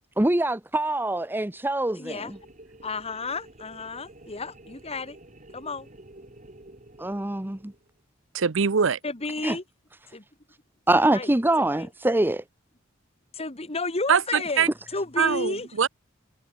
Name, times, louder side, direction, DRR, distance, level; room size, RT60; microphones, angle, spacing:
voice 1, 0.2-2.4 7.0-7.7 9.4-9.6 10.9-12.4, right 1 dB, 10° right, 0.7 m, -24 dB
voice 2, 2.0-2.3 2.8-5.2 5.5-5.9 9.0-9.6 10.1-10.2 11.1-11.3 11.8-11.9 13.3-14.7 14.9-15.7, left 3 dB, 30° left, 1.9 m, -32 dB
sound 1, 2.3-8.0, right 1 dB, 40° right, 4.2 m, -50 dB
voice 3, 8.3-9.0 14.1-14.7 15.2-15.9, right 6 dB, 65° right, 0.7 m, -23 dB
head